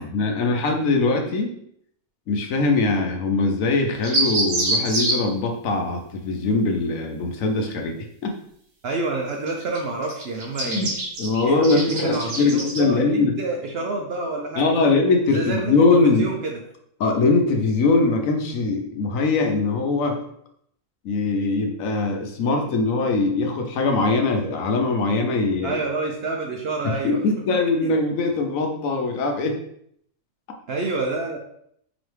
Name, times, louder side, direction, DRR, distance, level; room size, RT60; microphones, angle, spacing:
voice 1, 0.0-1.5 2.3-8.3 10.6-10.9 11.2-13.4 14.6-16.3 17.0-20.2 21.0-25.8 26.8-29.6, left 3 dB, 75° left, 3 dB, 1.1 m, -21 dB
sound 1, 4.0-5.1 9.5-9.8 10.0-12.8, right 2 dB, 85° right, 1.5 m, -25 dB
voice 2, 8.8-10.9 11.4-14.9 15.3-15.7 16.0-16.6 25.6-27.2 27.8-27.9 30.7-31.4, right 3 dB, 65° right, 1 dB, 0.6 m, -28 dB
4.0 x 3.0 x 3.2 m, 0.69 s
omnidirectional pair, 1.5 m